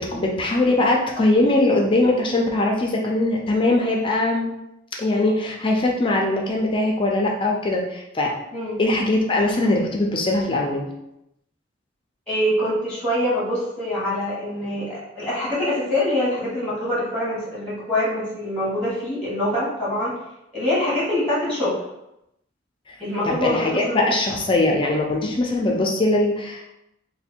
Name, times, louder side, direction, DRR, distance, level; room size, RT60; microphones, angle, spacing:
voice 1, 0.0-4.5 5.0-8.3 8.8-10.9 22.9-23.0 23.3-26.7, left 2 dB, 25° left, -1 dB, 0.4 m, -21 dB
voice 2, 12.3-20.1 20.5-21.8 23.0-24.0, left 1 dB, 5° left, -8 dB, 1.2 m, -24 dB
3.3 x 2.2 x 4.3 m, 0.85 s
head